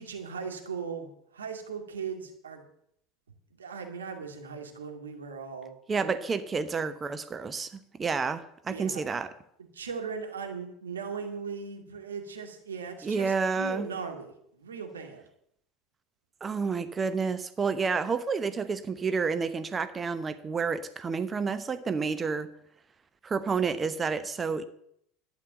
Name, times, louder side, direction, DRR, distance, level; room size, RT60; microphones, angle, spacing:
voice 1, 0.0-2.6 3.6-5.8 6.0-6.1 8.7-9.0 9.7-15.2, right 5 dB, 75° right, 4 dB, 2.3 m, -38 dB
voice 2, 5.9-9.3 13.0-13.9 16.4-22.5 23.2-24.6, right 5 dB, 25° right, 12 dB, 0.9 m, -30 dB
12.0 x 9.3 x 6.8 m, 0.71 s
figure-of-eight pair, 75°, 0 cm